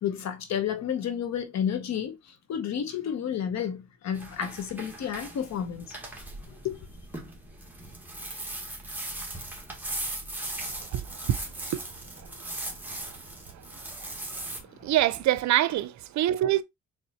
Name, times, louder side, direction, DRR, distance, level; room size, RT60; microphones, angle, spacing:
voice 1, 0.0-5.8 6.5-6.9 14.9-15.4 15.7-15.8, left 8 dB, 60° left, 1.0 m, -31 dB
sound 1, 4.1-14.6, right 1 dB, 5° right, 1.7 m, -38 dB
voice 2, 10.9-11.4 11.7-11.8 12.6-12.7 14.4-14.5 14.8-16.6, right 13 dB, 70° right, 0.6 m, -25 dB
4.3 x 3.4 x 2.9 m
cardioid pair, 90°, 30 cm